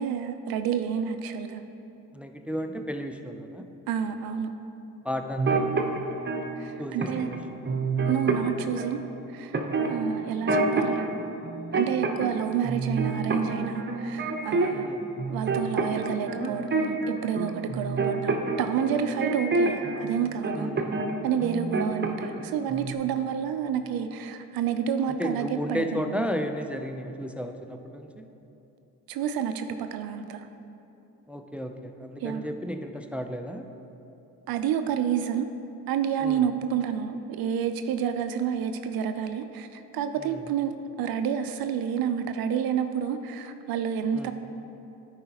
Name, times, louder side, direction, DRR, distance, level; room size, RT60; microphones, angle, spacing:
voice 1, 0.0-1.6 3.9-4.5 6.6-7.3 8.1-9.0 9.3-9.5 9.9-11.0 11.7-14.9 15.3-17.0 17.2-20.7 21.2-26.0 29.1-30.5 32.2-32.5 34.5-35.5 35.9-40.7 41.0-44.3, right 8 dB, 65° right, 9 dB, 0.5 m, -29 dB
voice 2, 2.1-3.7 5.0-5.7 6.8-7.8 9.8-10.1 14.7-15.0 20.5-21.1 25.1-28.3 31.3-33.7 36.2-36.5 40.1-40.5 44.1-44.3, equal, 5° right, 6 dB, 0.4 m, -34 dB
sound 1, 5.4-6.4 7.0-7.3 7.6-8.9 9.5-11.1 11.4-12.4 12.6-14.9 15.2-20.0 20.4-21.1 21.4-22.4 22.7-22.9, right 3 dB, 30° right, 0.8 m, -27 dB
9.9 x 4.8 x 2.9 m, 2.9 s
supercardioid pair, 65°, 38 cm